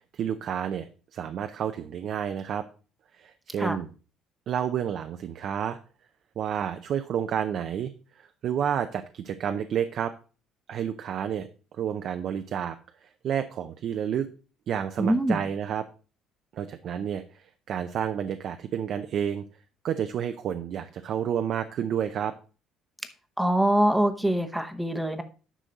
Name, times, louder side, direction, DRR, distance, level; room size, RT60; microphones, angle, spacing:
voice 1, 0.1-2.7 3.1-3.9 4.5-5.8 6.4-7.9 8.2-10.1 10.7-11.5 11.8-12.8 13.0-14.3 14.7-15.9 16.5-19.4 19.8-22.3, right 9 dB, 50° right, 8 dB, 0.6 m, -30 dB
voice 2, 15.0-15.4 23.4-25.2, right 1 dB, 5° right, 8 dB, 0.9 m, -24 dB
10.0 x 6.3 x 4.0 m, 0.36 s
cardioid pair, 150°, 0 cm